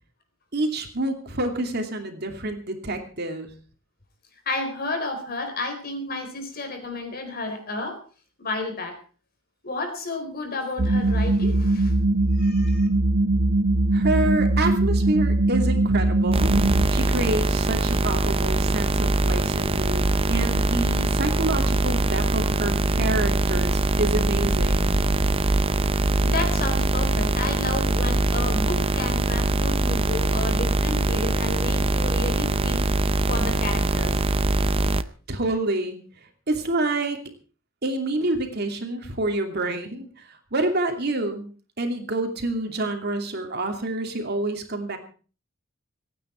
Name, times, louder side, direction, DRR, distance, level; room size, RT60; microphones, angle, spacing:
voice 1, 0.5-3.5 13.9-16.5 16.9-24.9 35.3-36.0 36.5-37.2 37.8-41.5 41.8-45.0, right 2 dB, 55° right, 4 dB, 2.7 m, -28 dB
voice 2, 4.5-8.0 8.4-9.0 9.6-11.9 12.4-12.9 26.2-32.9 33.3-34.2, left 2 dB, 50° left, 5 dB, 4.2 m, -31 dB
sound 1, 10.8-16.9, right 2 dB, 85° right, 1.1 m, -21 dB
sound 2, 16.3-35.0, right 2 dB, 30° right, 0.7 m, -22 dB
26.0 x 9.5 x 4.5 m, 0.39 s
head